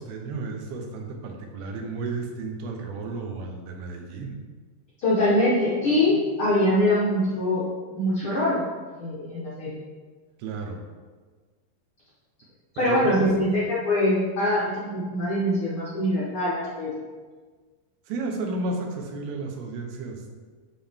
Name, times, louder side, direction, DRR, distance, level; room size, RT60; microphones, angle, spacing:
voice 1, 0.0-4.4 10.4-10.8 12.8-13.4 18.1-20.4, right 3 dB, 85° right, 3 dB, 2.8 m, -32 dB
voice 2, 5.0-7.6 7.9-8.7 9.0-9.8 12.7-16.9, left 1 dB, 75° left, -7 dB, 1.2 m, -23 dB
11.5 x 3.8 x 3.5 m, 1.4 s
omnidirectional pair, 4.3 m